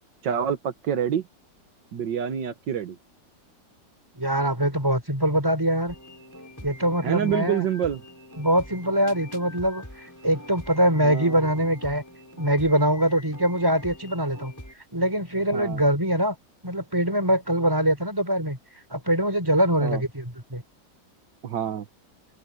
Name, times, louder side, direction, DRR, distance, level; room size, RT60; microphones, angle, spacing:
voice 1, 0.2-1.2 1.9-3.0 7.0-8.0 11.0-11.4 15.5-15.8 19.8-20.0 21.4-21.9, right 9 dB, 80° right, 1.9 m, -27 dB
voice 2, 4.2-5.9 6.6-7.7 8.4-9.8 10.2-12.0 12.4-14.5 14.9-16.4 16.6-18.6 18.9-20.6, right 1 dB, 10° right, 4.3 m, -23 dB
sound 1, 5.9-14.7, left 1 dB, 10° left, 6.4 m, -44 dB
open air
omnidirectional pair, 1.9 m